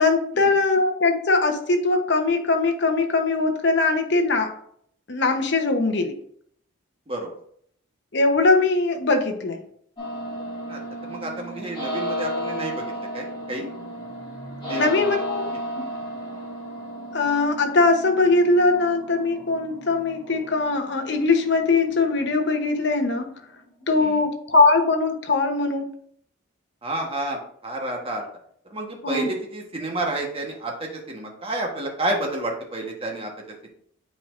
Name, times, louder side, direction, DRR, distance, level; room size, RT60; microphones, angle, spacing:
voice 1, 0.0-4.6 5.1-6.2 8.1-9.6 14.7-15.5 15.7-15.9 17.1-23.3 23.9-25.9 29.0-29.3, left 3 dB, 60° left, 4 dB, 0.9 m, -21 dB
sound 1, 10.0-23.9, equal, 25° left, 2.5 m, -34 dB
voice 2, 10.7-13.7 14.7-15.2 23.9-24.2 26.8-28.3 28.6-33.7, right 2 dB, 30° right, 1 dB, 1.2 m, -30 dB
9.0 x 4.3 x 2.5 m, 0.64 s
head